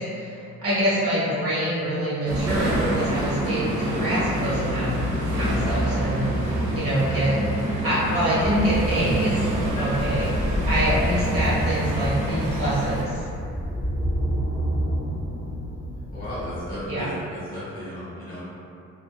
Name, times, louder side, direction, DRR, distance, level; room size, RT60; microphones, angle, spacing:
voice 1, 0.0-4.9 5.3-7.3 7.8-9.5 9.8-10.3 10.7-13.2 16.9-17.1, equal, 50° right, -11 dB, 1.3 m, -25 dB
sound 1, 2.3-13.0, right 1 dB, 70° right, 0.7 m, -26 dB
sound 2, 8.4-16.9, equal, 15° right, 1.3 m, -29 dB
sound 3, 9.8-11.1, left 2 dB, 85° left, 0.5 m, -41 dB
voice 2, 16.1-18.4, equal, 30° left, -10 dB, 1.1 m, -34 dB
2.7 x 2.3 x 2.2 m, 2.5 s
cardioid pair, 90°, 30 cm